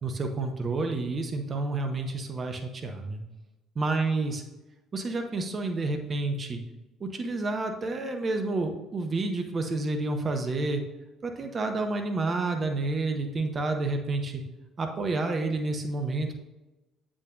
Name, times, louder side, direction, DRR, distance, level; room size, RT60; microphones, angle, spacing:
voice 1, 0.0-3.2 3.8-4.4 4.9-6.6 7.0-10.8 11.2-14.4 14.8-16.4, right 3 dB, 35° right, 4 dB, 0.9 m, -29 dB
7.8 x 6.1 x 2.5 m, 1.0 s
figure-of-eight pair, 50°, 0 cm